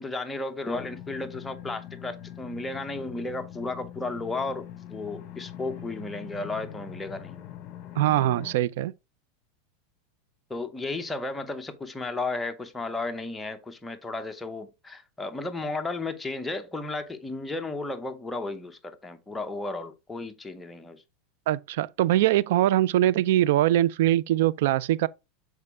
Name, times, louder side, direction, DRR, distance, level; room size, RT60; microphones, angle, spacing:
voice 1, 0.0-7.5 10.5-21.0, left 2 dB, 10° left, 0.8 m, -34 dB
sound 1, 0.7-8.5, left 12 dB, 45° left, 1.0 m, -43 dB
voice 2, 8.0-8.9 21.5-25.1, right 13 dB, 70° right, 0.3 m, -22 dB
6.6 x 4.6 x 3.6 m
supercardioid pair, 145°, 0 cm